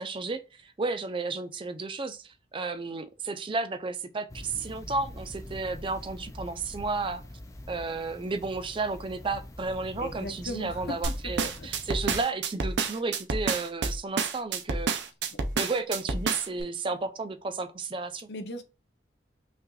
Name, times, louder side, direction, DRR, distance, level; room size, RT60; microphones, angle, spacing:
voice 1, 0.0-7.2 7.7-14.9 15.6-18.3, right 3 dB, 30° right, 0.4 m, -33 dB
sound 1, 4.3-12.2, left 1 dB, 20° left, 0.5 m, -43 dB
voice 2, 10.0-11.0 11.2-11.7 15.3-15.4 18.3-18.6, left 2 dB, 70° left, 0.7 m, -38 dB
sound 2, 11.0-16.6, right 4 dB, 80° right, 0.7 m, -29 dB
5.6 x 2.5 x 2.2 m
head